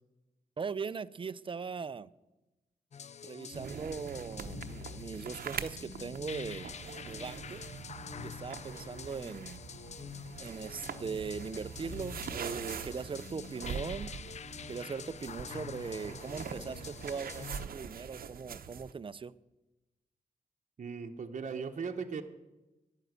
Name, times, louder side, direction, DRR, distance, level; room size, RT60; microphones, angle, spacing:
voice 1, 0.6-2.1 3.2-6.7 7.1-7.6 8.2-9.6 10.4-14.1 14.7-19.3, right 5 dB, 35° right, 17 dB, 0.5 m, -40 dB
sound 1, 2.9-17.7, left 7 dB, 50° left, 0.4 m, -46 dB
sound 2, 3.5-18.9, right 7 dB, 80° right, 0.8 m, -44 dB
sound 3, 9.5-17.2, equal, 80° left, 3.2 m, -67 dB
voice 2, 20.8-22.2, right 5 dB, 55° right, 4 dB, 1.0 m, -38 dB
11.0 x 9.3 x 8.1 m, 1.0 s
cardioid pair, 80°, 15 cm